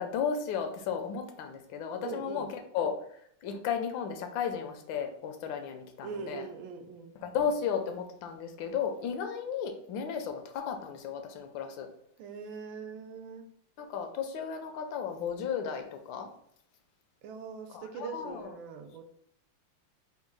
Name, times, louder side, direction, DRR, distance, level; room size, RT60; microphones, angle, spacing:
voice 1, 0.0-2.5 2.7-6.5 7.2-11.9 13.8-16.3 17.7-18.5, left 7 dB, 75° left, 6 dB, 1.3 m, -34 dB
voice 2, 2.0-2.5 6.0-7.2 12.2-13.5 17.2-19.0, right 5 dB, 75° right, 6 dB, 1.3 m, -42 dB
3.7 x 2.2 x 4.5 m, 0.68 s
omnidirectional pair, 2.2 m